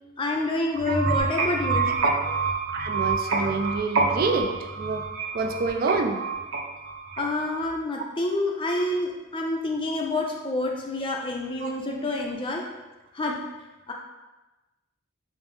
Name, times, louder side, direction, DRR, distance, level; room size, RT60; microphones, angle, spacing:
voice 1, 0.2-1.9 7.2-12.7 13.1-13.4 13.9-14.0, left 2 dB, 25° left, 0 dB, 0.4 m, -28 dB
sound 1, 0.8-7.6, right 4 dB, 85° right, 0.7 m, -27 dB
voice 2, 2.7-5.0 5.3-6.2 11.6-11.7 12.0-12.1, right 4 dB, 45° right, 3 dB, 0.3 m, -28 dB
5.3 x 2.0 x 3.2 m, 1.1 s
head